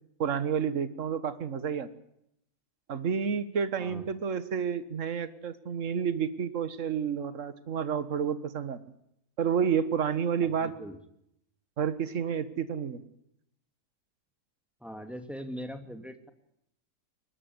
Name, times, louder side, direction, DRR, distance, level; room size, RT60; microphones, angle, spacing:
voice 1, 0.2-1.9 2.9-8.8 9.4-10.7 11.8-13.0, right 7 dB, 55° right, 12 dB, 1.8 m, -30 dB
voice 2, 10.4-11.0 14.8-16.3, equal, ahead, 7 dB, 2.6 m, -41 dB
22.5 x 20.0 x 9.7 m, 0.76 s
omnidirectional pair, 1.6 m